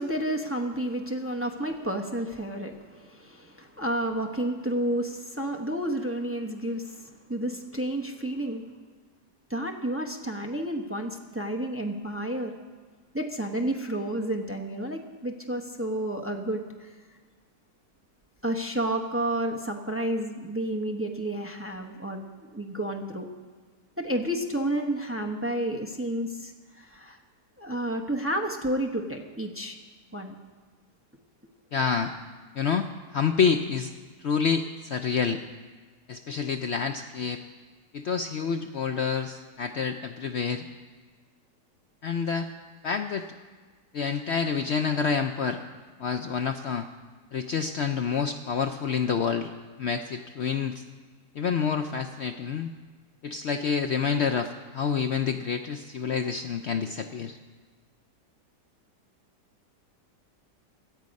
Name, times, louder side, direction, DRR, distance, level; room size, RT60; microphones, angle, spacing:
voice 1, 0.0-8.6 9.5-12.5 13.1-16.9 18.4-22.2 22.5-23.3 24.0-27.2 27.6-29.8 30.1-30.3, right 1 dB, 10° right, 3 dB, 0.6 m, -31 dB
voice 2, 31.7-32.1 32.6-32.9 33.1-33.9 34.2-35.4 36.1-37.4 37.9-40.6 42.0-42.5 42.8-43.3 43.9-45.6 46.0-46.9 47.3-49.5 49.8-50.8 51.4-52.7 53.2-57.4, left 6 dB, 90° left, 7 dB, 0.5 m, -28 dB
17.0 x 12.5 x 5.3 m, 1.4 s
omnidirectional pair, 1.9 m